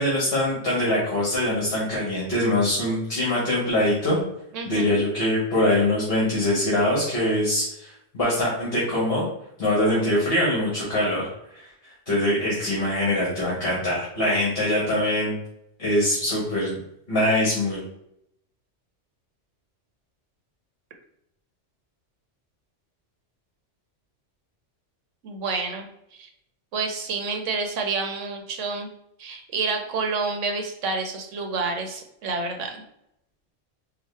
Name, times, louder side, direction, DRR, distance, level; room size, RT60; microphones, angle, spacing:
voice 1, 0.0-4.2 4.7-9.3 9.6-11.7 12.1-15.4 15.8-16.8 17.1-17.8, left 1 dB, 55° left, -6 dB, 1.4 m, -23 dB
voice 2, 4.5-5.0 25.2-25.9 26.2-26.3 26.7-28.9 29.2-32.8, right 4 dB, 85° right, 4 dB, 1.1 m, -29 dB
4.8 x 2.3 x 3.2 m, 0.78 s
omnidirectional pair, 1.2 m